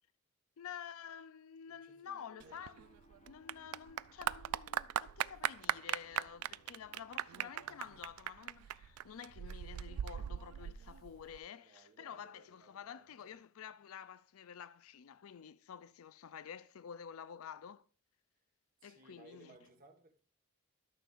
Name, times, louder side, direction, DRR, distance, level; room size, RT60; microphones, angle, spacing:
voice 1, 0.6-2.8 3.3-17.8 18.8-19.5, left 8 dB, 70° left, 0.4 m, -50 dB
voice 2, 1.7-2.6 11.5-13.4 18.8-20.2, right 2 dB, 40° right, 1.5 m, -62 dB
Piano, 2.4-8.0, left 2 dB, 35° left, 0.7 m, -67 dB
Clapping / Applause, 2.4-11.4, right 11 dB, 85° right, 0.3 m, -39 dB
12.5 x 6.5 x 2.5 m
head